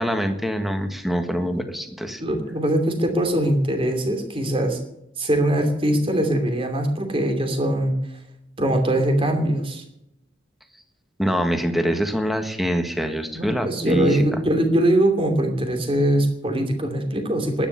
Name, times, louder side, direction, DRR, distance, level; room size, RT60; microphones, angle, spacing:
voice 1, 0.0-2.2 11.2-14.2, equal, ahead, 7 dB, 1.6 m, -24 dB
voice 2, 2.2-4.8 5.2-7.9 8.6-9.8 13.3-17.7, right 1 dB, 30° right, 5 dB, 2.9 m, -22 dB
12.0 x 10.0 x 9.9 m, 0.82 s
head